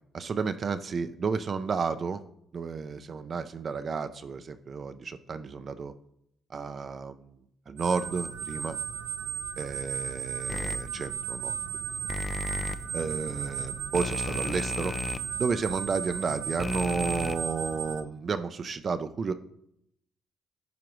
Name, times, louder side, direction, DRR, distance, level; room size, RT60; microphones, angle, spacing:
voice 1, 0.1-2.2 2.5-5.9 6.5-7.4 7.7-8.8 9.6-11.8 12.9-15.0 15.4-19.3, right 5 dB, 45° right, 10 dB, 0.5 m, -32 dB
sound 1, 7.8-18.0, right 7 dB, 85° right, 0.6 m, -35 dB
sound 2, 10.5-10.8 12.1-12.7 13.9-15.2 16.6-17.3, left 4 dB, 30° left, 0.4 m, -34 dB
10.5 x 5.0 x 3.1 m, 0.74 s
cardioid pair, 90°, 0 cm